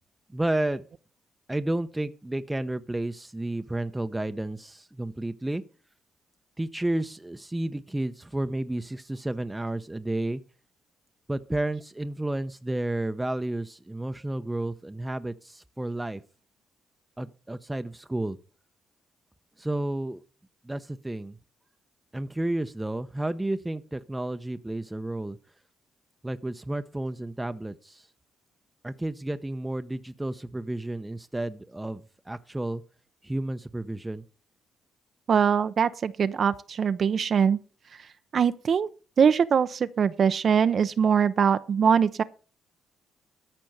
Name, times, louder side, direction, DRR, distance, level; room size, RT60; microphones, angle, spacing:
voice 1, 0.3-0.8 1.5-5.6 6.6-10.4 11.3-16.2 17.2-18.4 19.6-20.2 20.6-21.4 22.1-25.4 26.2-28.1 28.8-32.8 33.2-34.2, right 1 dB, 10° right, 0.7 m, -31 dB
voice 2, 35.3-37.6 38.3-38.9 39.2-42.2, right 7 dB, 50° right, 0.6 m, -22 dB
13.5 x 5.2 x 7.8 m
cardioid pair, 90°, 0 cm